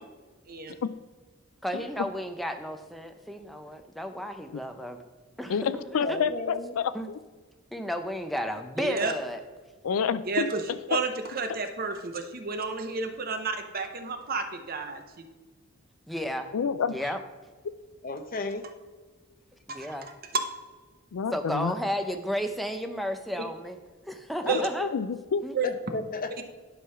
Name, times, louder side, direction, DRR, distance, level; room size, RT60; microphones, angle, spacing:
voice 1, 1.6-5.0 5.4-6.2 6.9-7.1 7.7-9.4 16.1-16.5 16.9-17.2 19.7-20.1 21.3-23.8 24.1-24.9 25.4-25.6, equal, ahead, 6 dB, 0.6 m, -33 dB
voice 2, 5.5-7.2 9.8-11.0 16.5-17.0 21.1-21.7 24.4-25.4, left 6 dB, 80° left, 15 dB, 0.4 m, -29 dB
voice 3, 6.0-6.8 18.0-18.7 25.6-26.4, left 2 dB, 40° left, 8 dB, 0.7 m, -34 dB
voice 4, 8.8-9.1 10.3-10.6 10.9-15.0 19.7-19.9 24.5-24.7 25.5-25.7, right 4 dB, 45° right, 7 dB, 0.8 m, -31 dB
11.5 x 3.8 x 5.5 m, 1.4 s
head